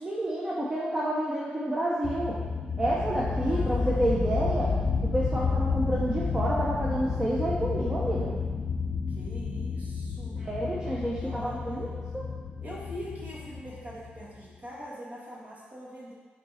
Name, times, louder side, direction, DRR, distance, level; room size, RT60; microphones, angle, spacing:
voice 1, 0.0-2.4 2.8-4.8 5.0-8.3 10.4-12.2, right 1 dB, 20° right, -5 dB, 0.8 m, -29 dB
sound 1, 2.0-14.4, left 4 dB, 45° left, 0.5 m, -31 dB
voice 2, 3.4-4.9 9.1-10.6 11.1-11.9 12.6-16.1, equal, 45° right, -6 dB, 1.9 m, -43 dB
5.9 x 4.1 x 4.9 m, 1.4 s
wide cardioid pair, 120°, 4 cm